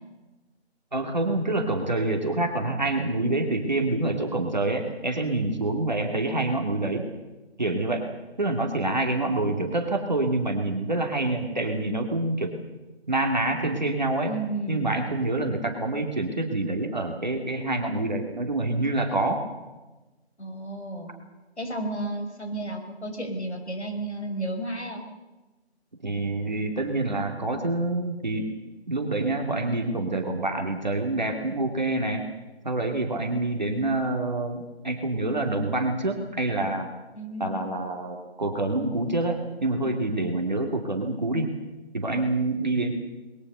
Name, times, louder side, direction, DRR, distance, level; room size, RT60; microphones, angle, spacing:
voice 1, 0.9-7.1 7.6-8.0 8.4-12.5 13.1-14.3 14.7-19.4 26.0-28.5 28.9-32.2 32.6-36.9 37.4-41.5 41.9-42.9, right 2 dB, 40° right, 2 dB, 2.5 m, -26 dB
voice 2, 14.2-14.9 20.4-21.1 21.6-25.0 37.1-37.7, right 1 dB, 80° left, 5 dB, 5.7 m, -32 dB
23.5 x 21.5 x 6.8 m, 1.1 s
figure-of-eight pair, 180°, 33 cm